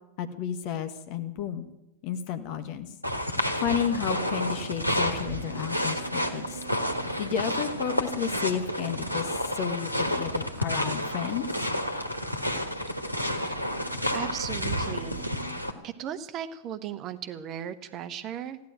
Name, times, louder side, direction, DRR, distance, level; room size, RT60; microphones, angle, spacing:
voice 1, 0.2-1.7 2.0-2.9 3.6-6.6 7.2-11.5, left 8 dB, 45° left, 9 dB, 1.4 m, -32 dB
sound 1, 3.0-15.7, equal, 90° right, 1.3 m, -30 dB
sound 2, 3.5-9.0, right 5 dB, 65° right, 1.0 m, -44 dB
voice 2, 14.1-15.3 15.8-18.6, right 9 dB, 35° right, 12 dB, 1.1 m, -36 dB
15.0 x 10.5 x 8.8 m, 0.92 s
figure-of-eight pair, 90°, 0 cm